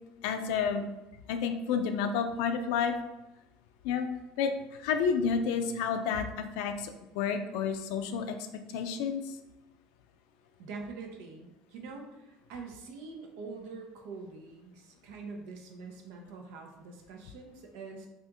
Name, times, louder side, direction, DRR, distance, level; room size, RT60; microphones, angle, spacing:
voice 1, 0.2-0.9 1.3-3.0 3.8-4.1 4.4-8.4 8.7-9.4, left 6 dB, 80° left, 7 dB, 0.3 m, -30 dB
voice 2, 10.6-18.1, right 4 dB, 80° right, 3 dB, 0.6 m, -44 dB
2.8 x 2.4 x 3.5 m, 0.97 s
cardioid pair, 160°, 2 cm